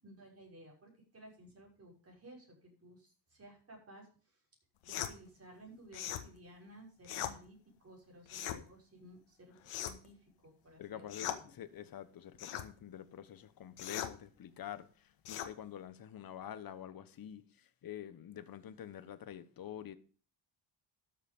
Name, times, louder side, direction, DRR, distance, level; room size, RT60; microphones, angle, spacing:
voice 1, 0.0-4.4 4.8-11.5, right 1 dB, 30° right, 6.3 m, -56 dB
sound 1, 4.9-5.1 5.9-6.3 7.0-7.4 8.3-8.6 9.6-10.1 11.1-11.4 12.4-12.7 13.8-14.1 15.2-15.5, left 11 dB, 75° left, 1.8 m, -39 dB
voice 2, 10.8-20.0, left 10 dB, 45° left, 1.3 m, -47 dB
13.0 x 7.5 x 5.4 m
cardioid pair, 140°, 49 cm